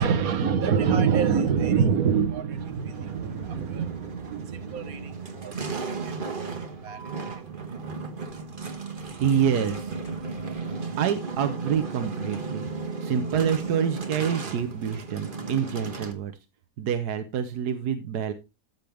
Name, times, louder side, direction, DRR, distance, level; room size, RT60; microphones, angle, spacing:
voice 1, 0.0-8.2, right 6 dB, 65° right, 1.5 m, -27 dB
sound 1, 2.5-16.1, right 4 dB, 35° right, 1.5 m, -35 dB
sound 2, 6.9-7.4 9.8-10.4 11.5-11.9 12.3-12.6, right 3 dB, 10° left, 2.7 m, -47 dB
voice 2, 9.2-9.9 10.5-12.7 13.0-16.3 16.8-18.3, right 8 dB, 80° right, 1.5 m, -27 dB
13.5 x 6.9 x 3.5 m
omnidirectional pair, 1.7 m